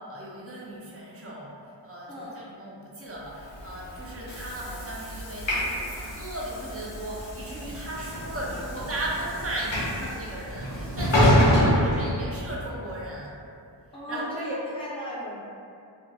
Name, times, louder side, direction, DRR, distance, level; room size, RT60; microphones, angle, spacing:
voice 1, 0.0-1.5 1.8-13.3 13.9-14.6, right 1 dB, 30° right, -5 dB, 0.6 m, -36 dB
Train / Sliding door, 3.4-12.7, equal, 85° left, 0.7 m, -27 dB
voice 2, 11.3-11.7 13.9-15.4, equal, 10° left, -8 dB, 0.8 m, -34 dB
2.6 x 2.1 x 2.3 m, 2.5 s
cardioid pair, 45°, 44 cm